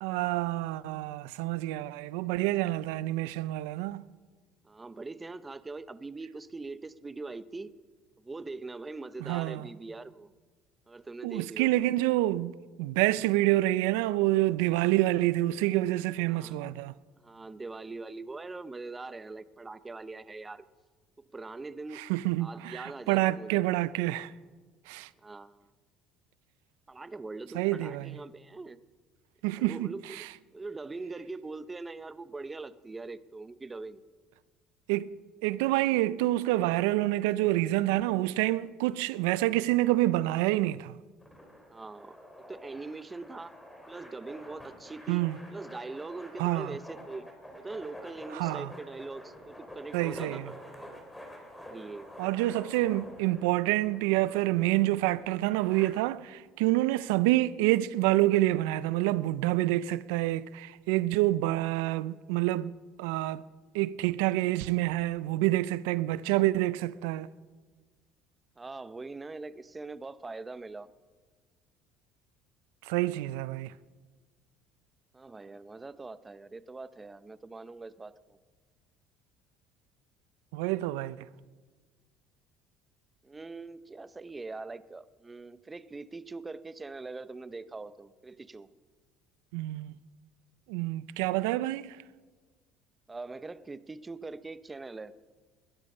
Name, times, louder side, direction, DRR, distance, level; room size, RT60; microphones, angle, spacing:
voice 1, 0.0-4.1 9.2-9.7 11.2-12.5 12.8-16.9 21.9-24.3 24.9-25.1 27.5-28.2 29.4-30.3 34.9-35.1 35.4-41.0 45.1-45.4 46.4-46.8 48.3-48.7 49.9-50.5 52.2-62.7 63.0-63.4 63.7-67.3 72.8-73.7 80.5-81.3 89.5-89.9 90.7-92.0, right 17 dB, 90° right, 0.4 m, -27 dB
voice 2, 4.6-7.7 8.2-10.3 10.9-11.7 16.3-16.6 17.2-20.6 21.2-22.0 22.4-23.6 25.2-25.7 26.9-28.8 29.6-30.3 30.5-34.0 41.7-43.6 43.9-47.3 47.5-50.9 51.7-52.1 68.6-70.9 75.1-78.4 83.2-88.7 93.1-95.1, right 3 dB, 20° right, 0.6 m, -42 dB
sound 1, 41.2-55.9, left 1 dB, 5° left, 4.3 m, -48 dB
20.5 x 12.5 x 5.4 m
supercardioid pair, 100°, 0 cm